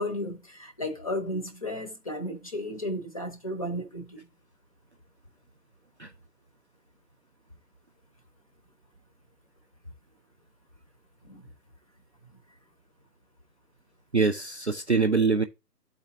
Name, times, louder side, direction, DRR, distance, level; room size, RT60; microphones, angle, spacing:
voice 1, 0.0-4.2 11.2-11.4, left 1 dB, 20° left, 0.8 m, -33 dB
voice 2, 14.1-15.4, right 4 dB, 45° right, 0.5 m, -24 dB
12.0 x 4.2 x 2.6 m
figure-of-eight pair, 150°, 49 cm